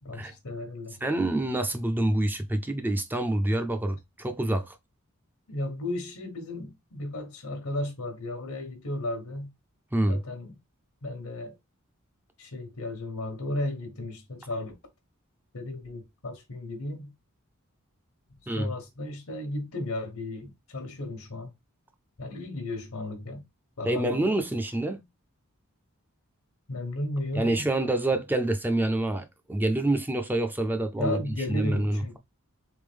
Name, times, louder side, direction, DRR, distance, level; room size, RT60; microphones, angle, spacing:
voice 1, 0.0-1.0 5.5-9.5 10.0-10.5 11.0-11.6 12.4-14.7 15.5-17.1 18.6-21.5 22.2-23.4 23.8-24.2 26.7-27.7 31.0-32.2, left 1 dB, 85° left, 1.1 m, -34 dB
voice 2, 1.0-4.8 9.9-10.2 18.5-18.7 23.8-25.0 27.3-31.2 31.5-32.2, right 1 dB, 10° right, 0.4 m, -27 dB
3.5 x 3.4 x 3.4 m
head